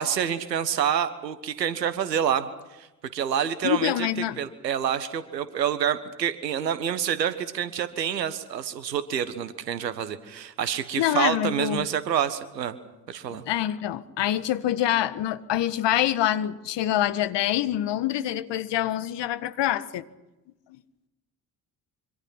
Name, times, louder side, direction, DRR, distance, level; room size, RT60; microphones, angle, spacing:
voice 1, 0.0-2.5 2.8-2.9 3.1-4.1 4.4-12.7 13.1-13.4, right 9 dB, 85° right, 1.5 m, -27 dB
voice 2, 3.6-4.4 11.0-11.9 13.3-20.0, left 12 dB, 60° left, 1.5 m, -26 dB
25.5 x 25.5 x 5.9 m
figure-of-eight pair, 45°, 48 cm